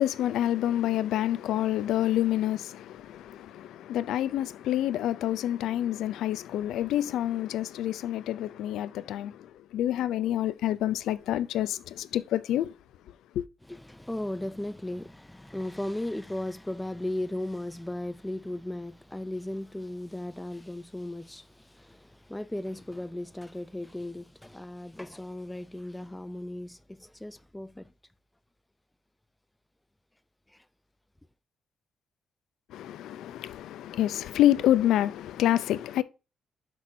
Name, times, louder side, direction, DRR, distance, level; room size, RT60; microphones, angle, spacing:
voice 1, 0.0-9.4 9.7-12.7 13.4-13.5 32.7-36.0, left 12 dB, 80° left, 0.4 m, -27 dB
voice 2, 13.7-27.9, left 1 dB, 10° left, 0.4 m, -36 dB
6.1 x 6.0 x 2.6 m
cardioid pair, 90°, 0 cm